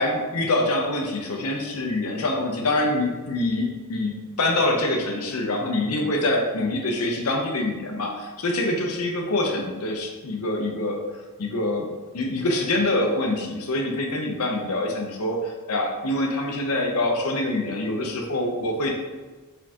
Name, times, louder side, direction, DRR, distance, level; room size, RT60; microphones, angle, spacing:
voice 1, 0.0-11.0 11.4-18.9, left 2 dB, 80° left, 2 dB, 0.7 m, -25 dB
4.3 x 3.7 x 2.9 m, 1.3 s
head